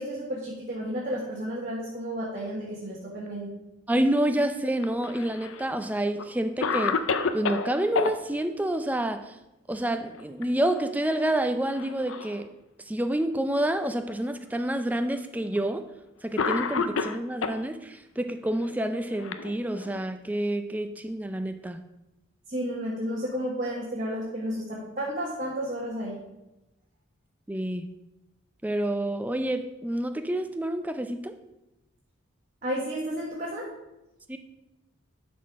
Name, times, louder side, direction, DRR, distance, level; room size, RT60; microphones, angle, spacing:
voice 1, 0.0-3.5 22.5-26.2 32.6-33.7, equal, 40° right, -5 dB, 1.5 m, -32 dB
voice 2, 3.9-7.0 7.3-9.4 9.7-12.5 12.9-15.8 16.2-21.8 27.5-27.9 28.6-31.3 34.3-34.4, right 1 dB, 10° right, 8 dB, 0.4 m, -28 dB
Cough, 4.8-5.7 6.2-6.3 6.6-8.1 10.0-10.4 10.8-10.9 11.7-12.4 13.2-13.3 14.3-14.4 15.6-15.7 16.4-17.6 18.6-20.0, left 5 dB, 70° left, 0.5 m, -30 dB
11.5 x 4.4 x 4.6 m, 0.94 s
head